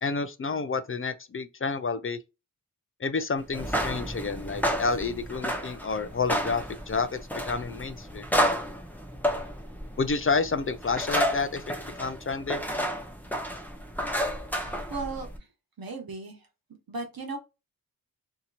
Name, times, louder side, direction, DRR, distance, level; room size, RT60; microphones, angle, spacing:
voice 1, 0.0-2.2 3.0-7.2 7.5-8.3 10.0-11.6 12.0-12.6, left 4 dB, 40° left, 0.4 m, -29 dB
sound 1, 3.5-15.4, equal, 5° left, 0.7 m, -31 dB
voice 2, 14.6-15.5 15.8-16.5 16.9-17.4, right 3 dB, 75° right, 1.1 m, -36 dB
2.9 x 2.8 x 2.4 m
wide cardioid pair, 80°, 35 cm